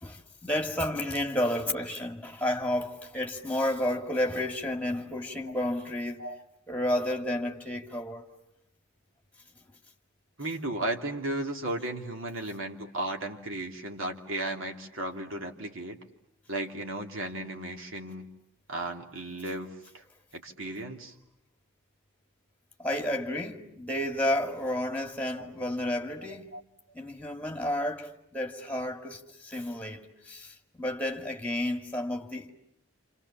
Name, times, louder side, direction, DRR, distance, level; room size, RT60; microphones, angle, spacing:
voice 1, 0.0-6.3 6.7-8.3 22.8-26.5 26.9-32.5, left 1 dB, 5° left, 2.2 m, -31 dB
voice 2, 10.4-16.0 16.5-18.3 18.7-20.0 20.3-21.1 25.4-25.5 26.5-26.6, right 2 dB, 60° right, 2.8 m, -35 dB
29.0 x 28.5 x 7.2 m
head